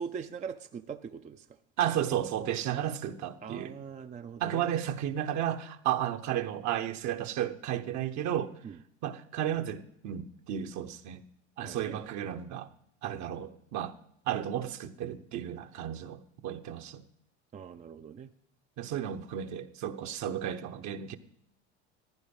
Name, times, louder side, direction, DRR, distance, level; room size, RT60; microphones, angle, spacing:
voice 1, 0.0-1.5 3.4-4.7 8.6-8.8 11.6-12.1 17.5-18.3, right 6 dB, 20° right, 0.5 m, -41 dB
voice 2, 1.8-3.7 4.4-8.5 9.0-11.2 11.6-12.7 13.0-13.9 14.3-17.0 18.8-21.2, right 10 dB, 50° right, 1.1 m, -33 dB
15.0 x 10.5 x 5.4 m
supercardioid pair, 100°, 35 cm